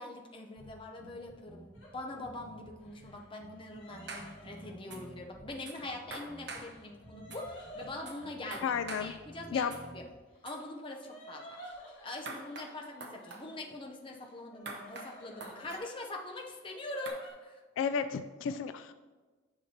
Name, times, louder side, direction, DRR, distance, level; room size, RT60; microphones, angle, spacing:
voice 1, 0.0-8.7 9.0-10.0 10.4-11.6 12.0-17.6, left 2 dB, 25° left, 1 dB, 0.7 m, -43 dB
sound 1, 0.6-10.2, right 1 dB, 75° right, 1.7 m, -54 dB
sound 2, 1.7-1.9 2.8-5.9 6.5-8.3 10.3-13.4 14.0-15.9 16.2-17.3, equal, 65° left, 2.4 m, -53 dB
sound 3, 4.1-4.3 4.9-5.0 5.7-5.8 6.1-6.7 7.3-7.4 8.1-8.2 8.5-9.1 9.7-9.8 10.5-10.6 12.3-12.7 13.0-13.4 14.7-15.1 15.4-15.8 17.1-17.2, right 3 dB, 60° right, 0.9 m, -43 dB
voice 2, 8.6-9.1 9.5-9.8 17.8-18.9, left 6 dB, 80° left, 11 dB, 0.3 m, -32 dB
9.4 x 5.9 x 2.8 m, 1.3 s
head